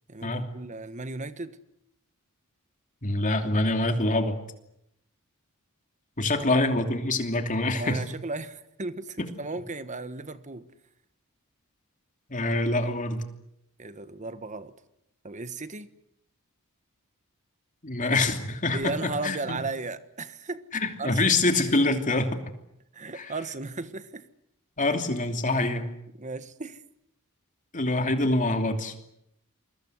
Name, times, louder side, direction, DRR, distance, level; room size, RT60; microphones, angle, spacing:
voice 1, 0.1-1.6 7.7-10.7 13.8-14.7 15.2-15.9 18.7-20.6 21.0-21.5 22.9-24.2 26.2-26.8, right 3 dB, 35° right, 1.4 m, -35 dB
voice 2, 3.0-4.4 6.2-8.0 9.2-9.3 12.3-13.2 17.8-19.6 20.8-22.4 23.1-23.3 24.8-25.9 27.7-28.9, left 2 dB, 35° left, 2.9 m, -25 dB
28.0 x 22.5 x 8.1 m
head